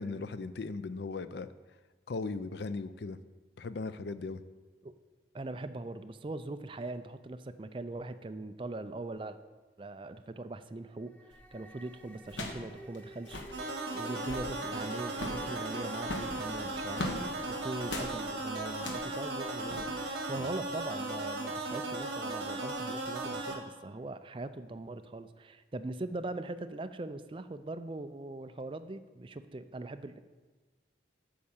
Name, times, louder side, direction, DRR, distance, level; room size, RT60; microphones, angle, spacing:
voice 1, 0.0-1.5 2.1-3.2 3.6-4.4 20.4-20.5, left 3 dB, 65° left, 14 dB, 0.4 m, -38 dB
voice 2, 5.3-9.4 9.8-30.2, right 2 dB, 25° right, 11 dB, 0.4 m, -41 dB
sound 1, 10.8-20.1, right 1 dB, 10° left, 0.7 m, -52 dB
sound 2, 11.3-11.6 12.3-12.7 12.9-13.0 13.2-13.6 14.1-14.5 15.1-15.5 16.0-17.2 17.8-18.1 18.7-19.1 19.6-19.8, left 1 dB, 85° left, 1.3 m, -39 dB
sound 3, 13.5-23.6, right 2 dB, 60° right, 2.0 m, -37 dB
8.6 x 6.4 x 7.2 m, 1.3 s
head